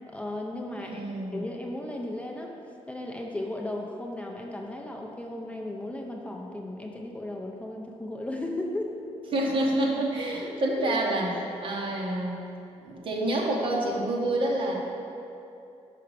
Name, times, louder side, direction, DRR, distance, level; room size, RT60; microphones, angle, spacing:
voice 1, 0.1-1.0 1.3-2.6 2.9-9.0, left 1 dB, 10° left, 0 dB, 0.5 m, -35 dB
voice 2, 0.7-1.4 9.3-12.4 12.8-14.8, right 1 dB, 45° right, -2 dB, 1.1 m, -28 dB
5.7 x 4.9 x 6.6 m, 2.8 s
wide cardioid pair, 165°, 12 cm